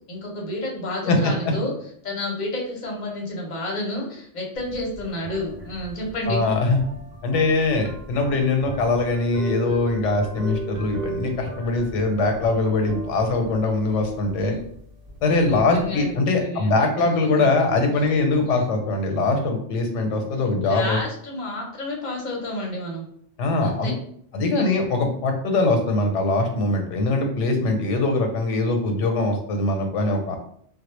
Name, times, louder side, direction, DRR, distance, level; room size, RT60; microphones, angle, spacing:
voice 1, 0.1-1.7 2.0-6.4 14.4-14.6 15.4-17.1 17.4-17.5 20.6-23.0 23.6-24.0 24.4-24.8, left 1 dB, 45° left, -1 dB, 0.7 m, -30 dB
sound 1, 4.6-16.2, right 1 dB, 60° right, 0.8 m, -37 dB
voice 2, 6.3-6.8 7.2-14.5 15.2-21.0 23.4-23.9 24.3-30.4, left 2 dB, 90° left, 4 dB, 0.9 m, -22 dB
2.2 x 2.0 x 3.0 m, 0.63 s
omnidirectional pair, 1.2 m